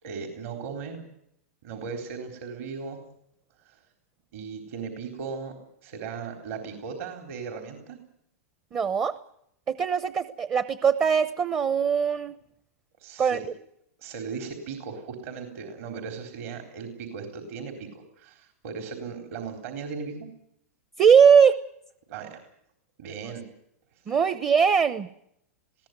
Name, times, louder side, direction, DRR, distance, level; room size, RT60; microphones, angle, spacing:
voice 1, 0.0-1.0 1.6-3.0 3.7-3.8 4.3-8.0 13.0-13.4 14.0-20.3 22.1-22.4 23.0-23.4 24.1-24.2, right 5 dB, 60° right, 5 dB, 4.1 m, -37 dB
voice 2, 8.7-9.1 9.7-12.4 13.2-13.4 21.0-21.6 24.1-25.1, right 7 dB, 25° right, 14 dB, 0.9 m, -20 dB
21.0 x 16.5 x 9.3 m, 0.75 s
hypercardioid pair, 125°, 8 cm